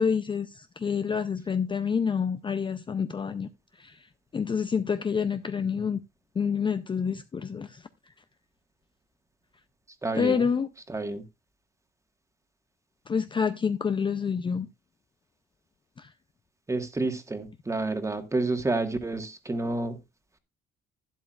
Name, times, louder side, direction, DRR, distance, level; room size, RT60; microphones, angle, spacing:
voice 1, 0.0-3.5 3.8-4.0 4.3-6.0 6.4-7.8 10.1-10.7 13.1-14.7 16.0-16.1, left 6 dB, 25° left, 0.5 m, -28 dB
voice 2, 10.0-10.5 10.9-11.2 16.7-20.0, right 2 dB, 15° right, 1.5 m, -29 dB
12.0 x 11.0 x 2.4 m
cardioid pair, 125°, 21 cm